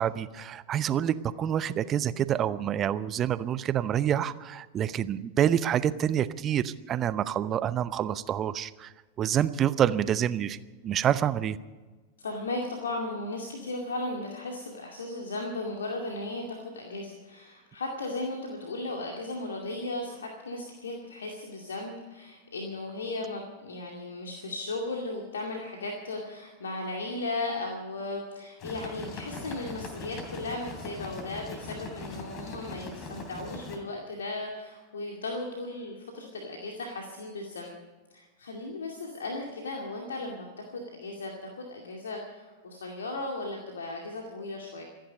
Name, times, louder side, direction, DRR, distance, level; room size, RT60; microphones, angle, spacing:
voice 1, 0.0-8.9 9.2-10.6 10.8-11.6, right 10 dB, 30° right, 15 dB, 0.7 m, -27 dB
voice 2, 12.2-37.8 38.1-44.8, left 2 dB, 70° left, 1 dB, 2.3 m, -36 dB
sound 1, 28.6-33.8, left 2 dB, 35° left, 3.2 m, -41 dB
26.5 x 10.5 x 5.3 m, 1.3 s
figure-of-eight pair, 90°, 0 cm